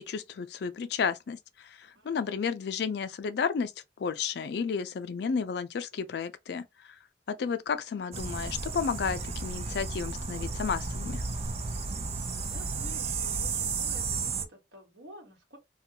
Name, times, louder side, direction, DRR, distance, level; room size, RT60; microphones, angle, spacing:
voice 1, 0.0-3.7 4.0-6.7 7.3-11.2, left 6 dB, 65° left, 0.4 m, -32 dB
voice 2, 1.9-2.7 12.3-15.6, right 1 dB, 85° right, 1.2 m, -51 dB
sound 1, 8.1-14.5, right 4 dB, 35° right, 0.4 m, -33 dB
2.4 x 2.2 x 2.7 m
head